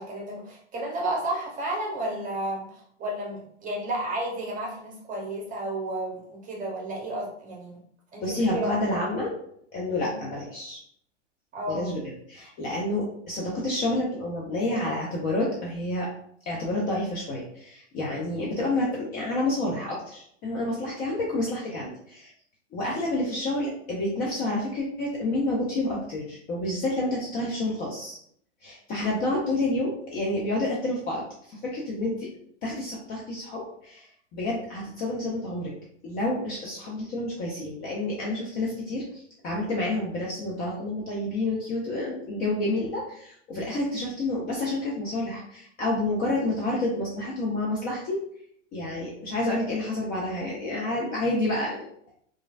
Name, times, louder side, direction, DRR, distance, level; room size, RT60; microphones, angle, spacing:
voice 1, 0.0-7.8 8.1-8.8 10.1-10.2 11.5-11.9, right 1 dB, 20° right, -2 dB, 0.9 m, -32 dB
voice 2, 8.2-9.3 9.7-10.8 11.7-12.0 12.3-16.1 16.5-22.3 22.7-28.2 28.6-32.3 32.6-35.7 36.0-48.2 48.7-51.9, left 2 dB, 25° left, -4 dB, 0.4 m, -29 dB
2.9 x 2.5 x 2.4 m, 0.66 s
hypercardioid pair, 120°, 37 cm